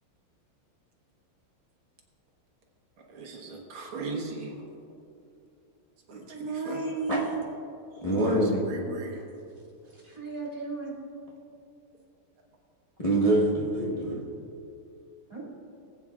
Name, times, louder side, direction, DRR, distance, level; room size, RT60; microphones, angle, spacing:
voice 1, 3.1-4.6 6.1-6.8 8.0-9.2, right 3 dB, 80° right, 0 dB, 2.2 m, -37 dB
voice 2, 6.3-7.4 9.8-10.9 15.3-15.4, right 4 dB, 15° right, -6 dB, 2.2 m, -34 dB
voice 3, 8.0-8.6 13.0-14.2, right 1 dB, 25° left, -5 dB, 0.9 m, -25 dB
19.0 x 8.7 x 2.4 m, 2.6 s
omnidirectional pair, 2.3 m